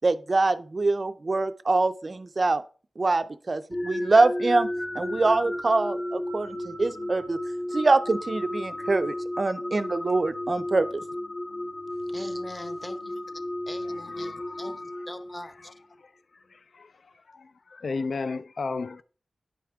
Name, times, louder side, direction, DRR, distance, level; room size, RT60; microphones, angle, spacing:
voice 1, 0.0-2.6 3.0-4.7 4.9-7.4 7.7-11.0, right 3 dB, 45° right, 0.4 m, -24 dB
sound 1, 3.7-15.7, left 1 dB, 60° left, 1.1 m, -33 dB
voice 2, 11.9-13.4 13.7-14.8 15.1-15.7, left 1 dB, 20° left, 0.8 m, -42 dB
voice 3, 14.2-14.8 16.5-16.9 17.3-19.0, left 4 dB, 75° left, 0.3 m, -34 dB
10.0 x 4.9 x 3.4 m
wide cardioid pair, 90°, 0 cm